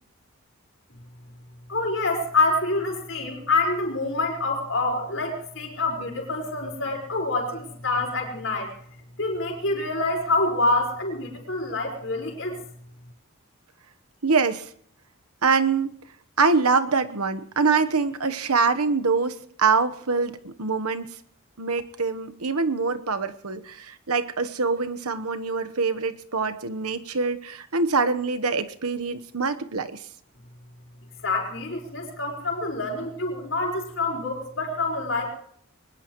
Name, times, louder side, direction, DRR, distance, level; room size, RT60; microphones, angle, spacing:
voice 1, 1.7-8.7 9.2-12.6 31.2-35.3, left 2 dB, 55° left, 2 dB, 5.0 m, -26 dB
voice 2, 14.2-14.7 15.4-16.0 16.4-21.1 21.6-30.0, right 4 dB, 90° right, 10 dB, 1.2 m, -24 dB
22.5 x 20.0 x 3.1 m, 0.63 s
head